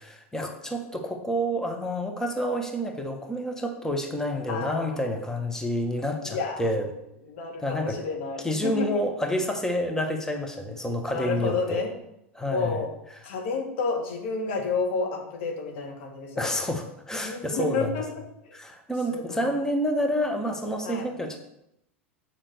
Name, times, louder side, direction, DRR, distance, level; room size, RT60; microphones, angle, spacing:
voice 1, 0.0-6.9 7.6-8.0 8.4-11.8 12.3-12.8 16.4-17.9 18.5-21.4, equal, 10° left, 4 dB, 1.4 m, -29 dB
voice 2, 4.5-5.1 6.2-6.6 7.3-9.0 9.8-10.0 11.1-11.9 12.5-12.9 13.2-16.6 17.2-18.0 18.5-18.6 19.1-19.5 20.8-21.1, left 4 dB, 70° left, 1 dB, 2.3 m, -30 dB
7.3 x 5.7 x 6.8 m, 0.82 s
hypercardioid pair, 95°, 7 cm